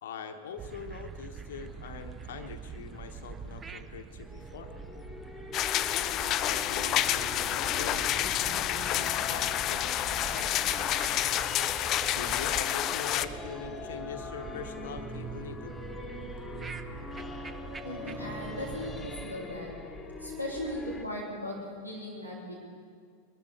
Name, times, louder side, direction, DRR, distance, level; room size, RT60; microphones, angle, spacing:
voice 1, 0.0-4.7 6.1-10.5 12.0-15.8, left 6 dB, 60° left, 7 dB, 1.0 m, -43 dB
sound 1, 0.6-19.3, right 6 dB, 20° right, 0.7 m, -45 dB
sound 2, 4.2-21.0, left 2 dB, 10° left, 1.5 m, -42 dB
sound 3, 5.5-13.2, left 12 dB, 35° left, 0.4 m, -29 dB
voice 2, 17.8-19.7 20.2-22.5, left 1 dB, 85° right, -5 dB, 3.3 m, -38 dB
22.0 x 12.5 x 4.8 m, 2.1 s
figure-of-eight pair, 90°, 0 cm